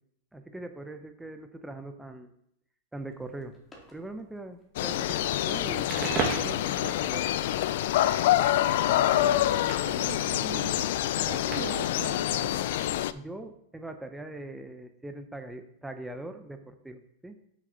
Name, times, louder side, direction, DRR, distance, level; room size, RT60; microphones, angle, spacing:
voice 1, 0.3-2.3 2.9-3.5 3.9-7.2 13.1-17.5, right 2 dB, 5° right, 7 dB, 0.7 m, -41 dB
sound 1, 3.1-10.1 10.4-11.9, left 1 dB, 15° left, 2.0 m, -54 dB
sound 2, 4.8-13.1, left 12 dB, 65° left, 0.4 m, -26 dB
Crackle, 5.8-11.9, right 5 dB, 35° right, 1.7 m, -38 dB
voice 2, 8.6-10.7 11.2-12.6, right 6 dB, 90° right, 0 dB, 1.2 m, -41 dB
7.4 x 6.5 x 3.9 m, 0.74 s
supercardioid pair, 135°, 0 cm